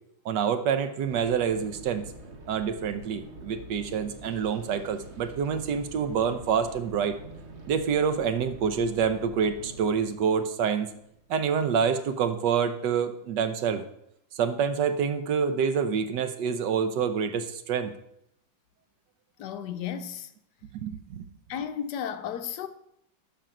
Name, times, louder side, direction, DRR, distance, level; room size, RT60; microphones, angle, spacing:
voice 1, 0.2-2.0 2.5-7.2 7.7-10.9 11.3-13.8 14.4-17.9 20.8-21.3, right 7 dB, 65° right, 1.3 m, -27 dB
sound 1, 1.1-11.8, right 2 dB, 45° right, 1.1 m, -46 dB
voice 2, 19.4-20.3 21.5-22.7, left 8 dB, 65° left, 1.2 m, -33 dB
12.0 x 5.9 x 4.9 m
omnidirectional pair, 2.1 m